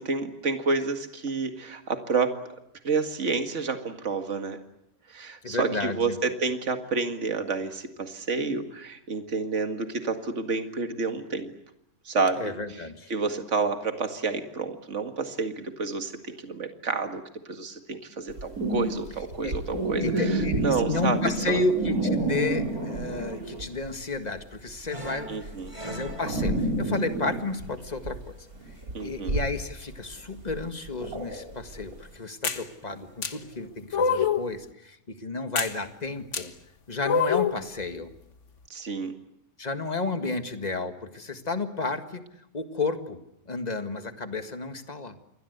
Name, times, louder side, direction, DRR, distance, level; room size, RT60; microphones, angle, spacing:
voice 1, 0.0-2.4 2.8-4.6 5.1-11.5 12.1-12.5 13.1-21.6 25.3-25.7 28.9-29.4 38.7-39.1, right 4 dB, 55° right, 6 dB, 2.3 m, -29 dB
voice 2, 5.4-6.2 12.4-13.1 19.4-19.5 20.0-28.3 29.0-36.5 36.9-38.1 39.6-42.2 42.5-45.2, left 3 dB, 30° left, 7 dB, 1.8 m, -32 dB
sound 1, 18.3-23.9 24.2-32.0, right 1 dB, 70° right, 4.0 m, -29 dB
sound 2, 24.9-28.3 28.6-29.2 29.9-30.3 30.9-31.5 31.9-32.2 32.6-33.7, right 1 dB, 20° right, 3.1 m, -43 dB
sound 3, 32.4-32.6 33.2-33.3 33.9-34.5 35.6-35.7 36.3-36.4 37.0-37.6, left 6 dB, 55° left, 1.7 m, -25 dB
28.0 x 22.0 x 8.1 m, 0.80 s
omnidirectional pair, 1.5 m